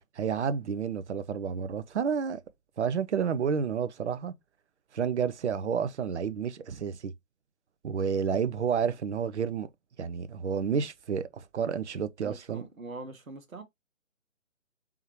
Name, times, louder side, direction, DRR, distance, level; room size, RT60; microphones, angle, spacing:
voice 1, 0.2-2.4 2.8-4.3 4.9-7.1 7.8-9.7 10.0-12.6, right 7 dB, 55° right, 0.7 m, -30 dB
voice 2, 12.2-13.6, right 3 dB, 80° right, 1.6 m, -43 dB
4.7 x 3.6 x 3.0 m
figure-of-eight pair, 145°, 40 cm